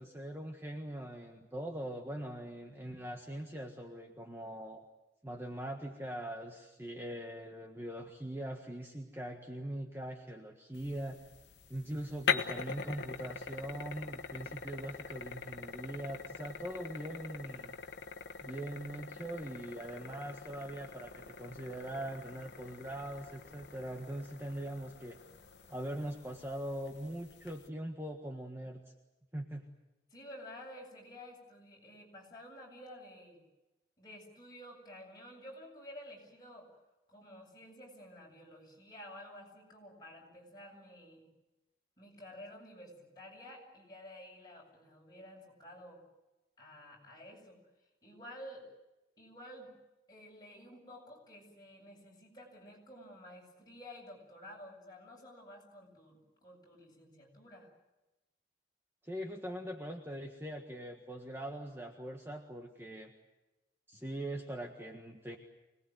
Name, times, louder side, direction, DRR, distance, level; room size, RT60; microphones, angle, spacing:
voice 1, 0.0-4.8 5.2-11.2 11.7-17.8 18.4-25.2 25.7-28.8 29.3-29.7 59.0-63.1 63.9-65.4, right 1 dB, 15° right, 2 dB, 1.6 m, -42 dB
sound 1, 10.7-27.7, left 6 dB, 85° left, 1.3 m, -43 dB
voice 2, 30.1-33.4 34.0-36.7 37.1-41.3 42.0-46.0 46.6-47.6 48.0-48.7 49.2-49.7 50.1-57.7 63.9-64.0, left 1 dB, 25° left, -1 dB, 7.6 m, -52 dB
25.5 x 19.5 x 9.4 m, 1.0 s
head